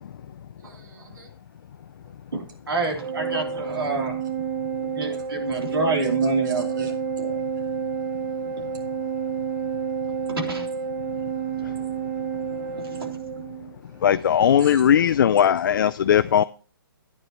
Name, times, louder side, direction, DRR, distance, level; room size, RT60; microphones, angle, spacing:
voice 1, 0.6-1.3 5.5-10.4 10.9-13.0 13.8-14.2 14.6-14.9, right 4 dB, 55° right, 3.1 m, -51 dB
voice 2, 2.3-4.2 4.8-7.4 10.3-10.7 11.2-11.3 12.6-13.1, right 3 dB, 80° right, 3.4 m, -28 dB
Organ, 3.0-13.7, right 6 dB, 30° right, 0.8 m, -29 dB
voice 3, 14.0-16.4, left 9 dB, 60° left, 0.4 m, -18 dB
11.5 x 9.3 x 3.1 m
hypercardioid pair, 145°, 12 cm